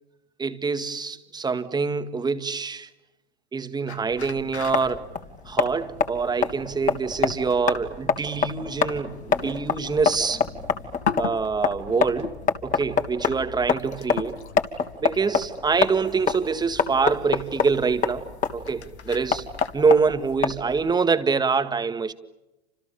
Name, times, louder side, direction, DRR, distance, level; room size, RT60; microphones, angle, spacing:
voice 1, 0.4-2.9 3.5-5.0 5.5-10.4 11.2-14.4 15.0-18.2 18.5-19.4 19.7-22.1, right 5 dB, 10° right, 10 dB, 2.0 m, -25 dB
sound 1, 3.9-19.9, left 7 dB, 90° left, 1.8 m, -40 dB
sound 2, 4.1-20.9, left 6 dB, 25° left, 3.2 m, -27 dB
30.0 x 27.5 x 7.1 m, 0.97 s
hypercardioid pair, 115°, 33 cm